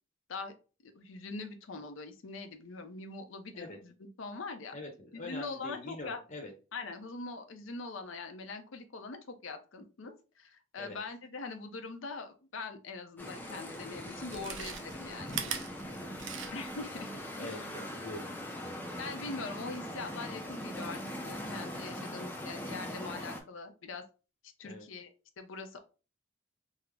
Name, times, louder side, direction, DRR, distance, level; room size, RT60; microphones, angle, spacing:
voice 1, 0.8-4.8 5.1-6.2 6.7-15.6 16.5-17.1 17.4-17.7 19.0-24.0 24.4-25.8, left 3 dB, 75° left, 7 dB, 0.6 m, -43 dB
voice 2, 5.1-6.5 10.8-11.0 15.8-16.2 17.4-18.3 22.0-22.1 24.6-24.8, left 2 dB, 35° left, 2 dB, 0.7 m, -44 dB
sound 1, 13.2-23.4, equal, 10° left, 0.4 m, -41 dB
Chewing mastication, 13.4-13.5 14.2-16.8 17.2-17.3, right 8 dB, 65° right, 0.5 m, -40 dB
3.6 x 2.0 x 3.3 m, 0.33 s
head